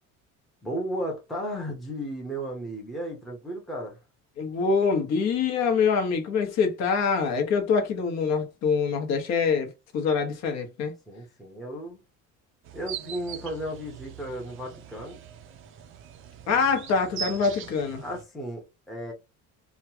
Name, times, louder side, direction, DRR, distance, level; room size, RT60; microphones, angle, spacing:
voice 1, 0.6-4.0 11.1-12.0 12.7-15.2 18.0-19.1, equal, ahead, 0.7 m, -34 dB
voice 2, 4.4-10.9 16.5-18.0, left 5 dB, 55° left, 1.0 m, -25 dB
sound 1, 12.6-18.2, right 9 dB, 40° right, 0.4 m, -41 dB
3.0 x 2.3 x 2.7 m
cardioid pair, 180°, 32 cm